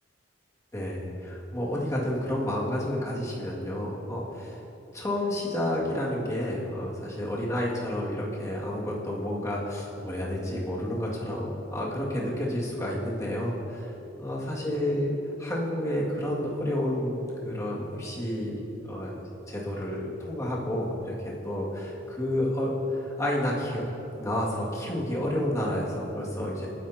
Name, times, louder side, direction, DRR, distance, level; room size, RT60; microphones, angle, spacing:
voice 1, 0.7-4.6 4.9-13.9 14.2-15.1 15.4-19.2 19.5-23.9 24.2-26.7, left 1 dB, 15° left, -5 dB, 2.1 m, -30 dB
20.0 x 10.0 x 2.9 m, 2.9 s
head